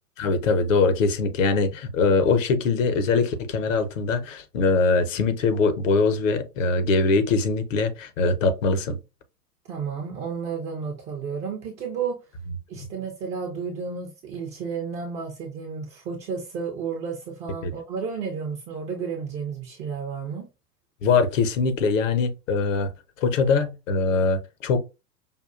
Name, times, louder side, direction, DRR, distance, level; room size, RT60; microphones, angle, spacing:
voice 1, 0.2-9.0 17.6-17.7 21.0-22.9 23.2-24.8, left 4 dB, 55° left, 0.8 m, -22 dB
voice 2, 9.7-12.2 12.7-20.5, right 6 dB, 15° right, 0.4 m, -32 dB
5.3 x 2.2 x 2.4 m
figure-of-eight pair, 105°, 47 cm